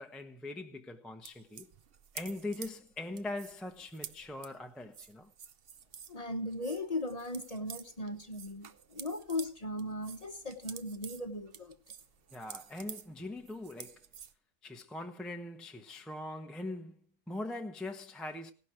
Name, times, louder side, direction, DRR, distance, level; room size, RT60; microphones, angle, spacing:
voice 1, 0.0-1.7 2.1-5.3 12.3-14.0 14.6-17.0 17.3-18.5, left 2 dB, ahead, 0.8 m, -41 dB
sound 1, 1.2-6.2 6.5-9.5 9.8-14.3, right 8 dB, 50° right, 0.8 m, -50 dB
voice 2, 6.1-11.7, left 1 dB, 25° left, 1.1 m, -38 dB
17.0 x 11.5 x 4.6 m
omnidirectional pair, 1.6 m